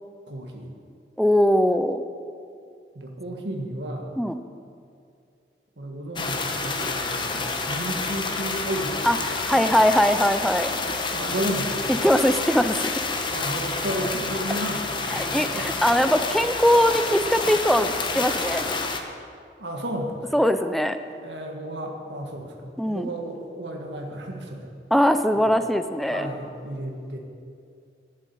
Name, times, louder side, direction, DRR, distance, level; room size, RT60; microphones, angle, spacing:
voice 1, 0.3-0.7 2.9-4.1 5.8-9.4 11.1-11.9 13.3-15.7 19.6-20.3 21.2-24.7 25.3-25.5 26.1-27.2, right 1 dB, 90° right, 1 dB, 1.6 m, -33 dB
voice 2, 1.2-2.0 4.2-4.4 9.0-10.7 11.9-13.0 15.1-18.6 20.3-21.0 22.8-23.1 24.9-26.3, equal, ahead, 9 dB, 0.4 m, -21 dB
sound 1, 6.2-19.0, left 3 dB, 25° left, 0.9 m, -28 dB
12.0 x 7.5 x 9.1 m, 2.4 s
head